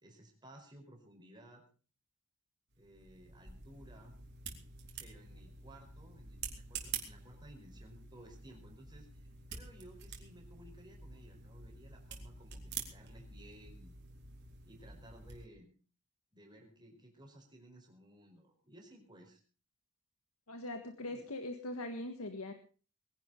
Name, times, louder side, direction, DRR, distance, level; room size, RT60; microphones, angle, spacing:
voice 1, 0.0-1.6 2.8-4.2 5.0-14.0 14.6-15.7 16.3-19.4 21.0-21.3, right 1 dB, 20° right, 2 dB, 4.9 m, -57 dB
sound 1, 2.7-15.5, right 6 dB, 50° right, 3.7 m, -48 dB
voice 2, 20.5-22.5, left 1 dB, 90° left, 6 dB, 1.7 m, -41 dB
21.5 x 11.0 x 5.3 m, 0.39 s
head